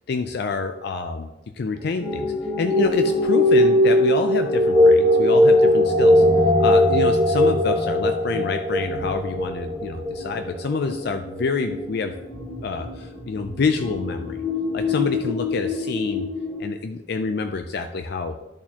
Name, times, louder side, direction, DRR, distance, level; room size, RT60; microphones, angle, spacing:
voice 1, 0.1-1.3 1.6-6.2 6.6-12.1 12.6-14.4 14.7-16.3 16.6-18.4, left 4 dB, 60° left, 7 dB, 0.4 m, -27 dB
sound 1, 2.0-16.6, left 1 dB, 35° left, 1.9 m, -20 dB
12.5 x 4.3 x 2.9 m, 1.0 s
head